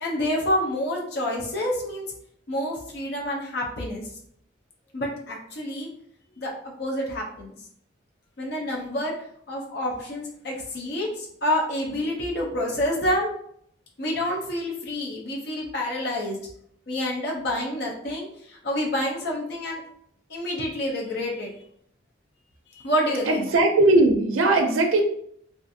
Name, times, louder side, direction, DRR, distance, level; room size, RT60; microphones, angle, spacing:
voice 1, 0.0-2.0 2.5-4.0 4.9-5.9 6.4-7.5 8.4-9.1 9.5-13.3 14.0-16.4 16.9-19.8 20.3-21.5 22.7-23.5, left 1 dB, 55° left, -1 dB, 0.6 m, -28 dB
voice 2, 23.3-25.0, right 2 dB, 85° right, 3 dB, 0.4 m, -19 dB
2.5 x 2.4 x 2.6 m, 0.68 s
head